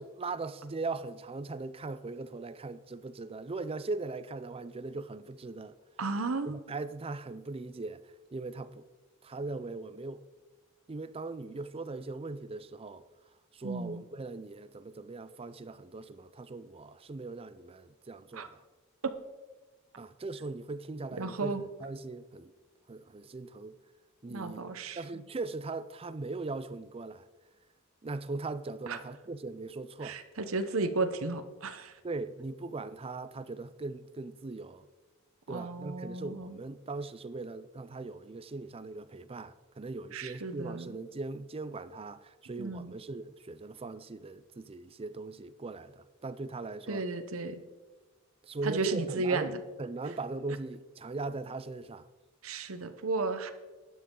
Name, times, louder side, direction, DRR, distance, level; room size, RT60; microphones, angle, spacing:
voice 1, 0.0-5.8 6.4-8.0 8.3-8.8 9.2-10.2 10.9-13.0 13.5-18.6 20.0-22.5 22.9-23.7 24.2-24.7 25.0-27.3 28.0-30.2 32.0-34.9 35.5-47.0 48.4-52.1, right 3 dB, 25° right, 0.5 m, -39 dB
voice 2, 6.0-6.6 13.6-14.0 18.3-18.5 19.0-19.1 21.2-21.6 24.3-25.2 28.9-29.0 30.0-31.9 35.5-36.6 40.1-40.9 42.6-42.9 46.9-47.6 48.6-49.5 52.4-53.5, right 3 dB, 80° right, 0.9 m, -34 dB
12.5 x 9.5 x 3.8 m
head